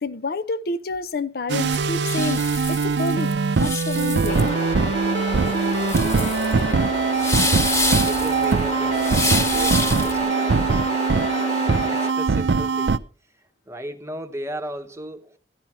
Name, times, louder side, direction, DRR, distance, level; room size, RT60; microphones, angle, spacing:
voice 1, 0.0-4.5, left 3 dB, 60° left, 0.6 m, -29 dB
sound 1, 1.5-13.0, right 4 dB, 85° right, 0.5 m, -22 dB
sound 2, 1.6-10.2, left 2 dB, 15° left, 1.4 m, -27 dB
sound 3, 4.3-12.1, left 2 dB, 40° left, 1.1 m, -30 dB
voice 2, 8.0-10.8 11.5-13.0 13.3-15.4, right 1 dB, 15° right, 1.0 m, -36 dB
13.5 x 11.0 x 4.3 m
head